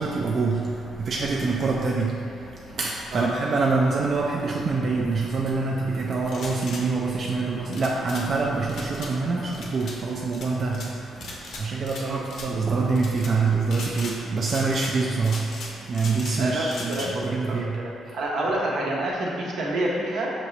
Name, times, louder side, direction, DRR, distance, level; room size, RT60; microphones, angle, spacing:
voice 1, 0.0-17.8, right 4 dB, 50° right, -2 dB, 0.4 m, -26 dB
sound 1, 6.3-6.8 7.7-8.3 8.7-9.1 9.5-10.0 10.3-10.9 11.2-12.0 12.3-12.5 13.0-13.3 13.7-14.2 14.5-14.9 15.2-16.4 16.7-17.1, left 3 dB, 70° left, 0.7 m, -38 dB
voice 2, 16.4-20.3, right 1 dB, 80° right, -3 dB, 0.8 m, -28 dB
5.9 x 2.8 x 3.1 m, 2.6 s
cardioid pair, 90°, 0 cm